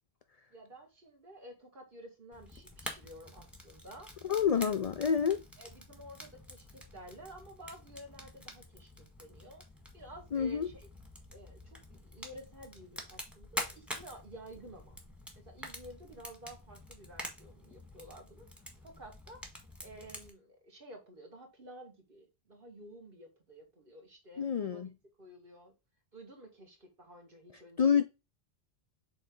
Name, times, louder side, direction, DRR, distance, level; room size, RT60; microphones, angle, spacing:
voice 1, 0.5-4.1 4.6-4.7 5.6-9.6 9.9-10.9 11.3-15.0 15.4-19.4 19.8-24.9 25.2-25.7 26.1-28.1, right 1 dB, 55° right, 2.1 m, -52 dB
Fire, 2.3-20.3, equal, ahead, 1.5 m, -47 dB
voice 2, 4.2-5.4 10.3-10.7 24.4-24.9 27.8-28.1, left 7 dB, 55° left, 0.4 m, -28 dB
7.8 x 3.3 x 3.8 m
omnidirectional pair, 1.1 m